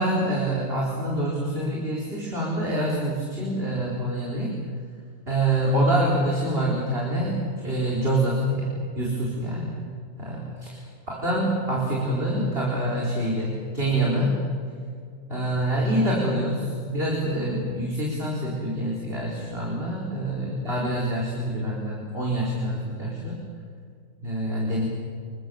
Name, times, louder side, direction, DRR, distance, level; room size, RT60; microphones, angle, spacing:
voice 1, 0.0-4.5 5.3-7.4 7.6-9.8 10.2-10.8 11.1-14.3 15.3-23.3 24.2-24.8, right 1 dB, 45° right, -3 dB, 4.8 m, -26 dB
28.0 x 23.0 x 7.1 m, 2.3 s
omnidirectional pair, 1.4 m